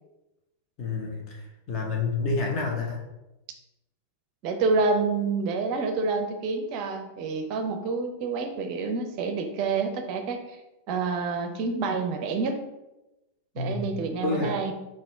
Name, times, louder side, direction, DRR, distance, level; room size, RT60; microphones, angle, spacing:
voice 1, 0.8-3.0 13.6-13.9 14.2-14.5, left 3 dB, 35° left, 0 dB, 1.0 m, -29 dB
voice 2, 4.4-10.4 10.9-12.6 13.6-14.7, right 4 dB, 40° right, 5 dB, 0.5 m, -28 dB
4.1 x 2.5 x 4.3 m, 0.97 s
figure-of-eight pair, 90°, 0 cm